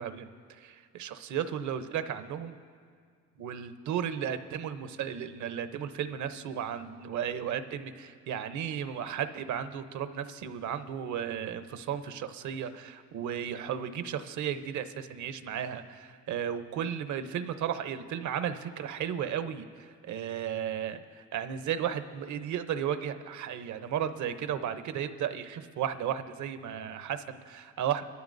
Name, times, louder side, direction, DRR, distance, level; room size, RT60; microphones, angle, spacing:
voice 1, 0.0-2.5 3.4-28.0, right 9 dB, 75° right, 10 dB, 0.8 m, -34 dB
28.0 x 12.5 x 2.6 m, 2.1 s
cardioid pair, 90°, 30 cm